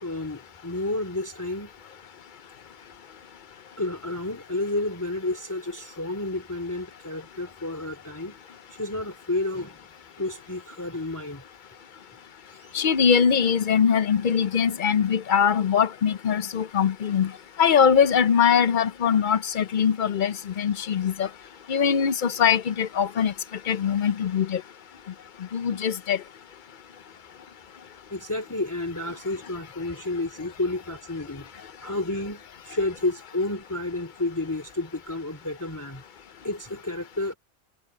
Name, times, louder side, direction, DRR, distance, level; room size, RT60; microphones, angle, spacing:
voice 1, 0.0-1.7 3.8-8.4 8.7-9.8 10.2-11.4 12.5-12.7 28.1-36.0 36.4-37.3, left 2 dB, 10° left, 2.7 m, -31 dB
voice 2, 12.7-17.3 17.6-21.3 21.7-23.3 23.7-24.6 25.5-26.2, left 7 dB, 50° left, 0.6 m, -22 dB
omnidirectional pair, 1.4 m